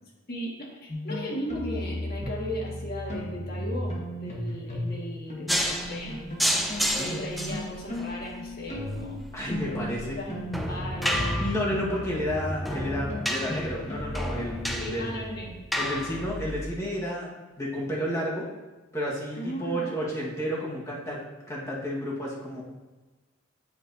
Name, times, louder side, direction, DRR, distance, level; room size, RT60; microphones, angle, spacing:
voice 1, 0.0-6.2 6.8-9.2 9.6-11.5 14.8-15.6 19.3-20.0, equal, 50° left, -2 dB, 1.6 m, -36 dB
sound 1, 0.9-5.0 5.3-14.8, left 1 dB, 35° left, 1.3 m, -35 dB
sound 2, 2.2-5.5, right 2 dB, 45° right, 1.1 m, -46 dB
sound 3, 5.5-16.7, equal, ahead, 0.4 m, -32 dB
voice 2, 9.3-10.2 11.4-15.1 15.7-17.3 17.6-18.5 18.9-21.2 21.5-22.6, equal, 15° left, -5 dB, 1.4 m, -31 dB
8.5 x 6.3 x 2.6 m, 1.2 s
head